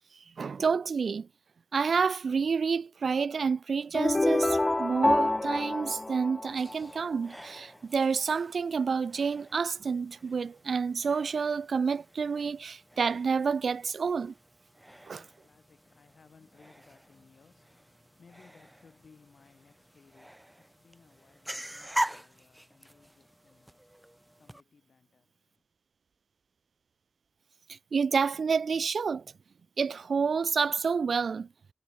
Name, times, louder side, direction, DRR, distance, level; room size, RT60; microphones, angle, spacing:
voice 1, 0.4-1.3 1.7-14.3 15.1-15.2 27.7-29.3 29.8-31.5, right 5 dB, 85° right, 0.5 m, -29 dB
sound 1, 3.9-7.0, left 2 dB, 25° left, 0.4 m, -27 dB
sound 2, 6.5-24.6, equal, 5° right, 1.0 m, -43 dB
voice 2, 14.6-25.6, left 5 dB, 75° left, 7.2 m, -62 dB
wide cardioid pair, 100°, 0 cm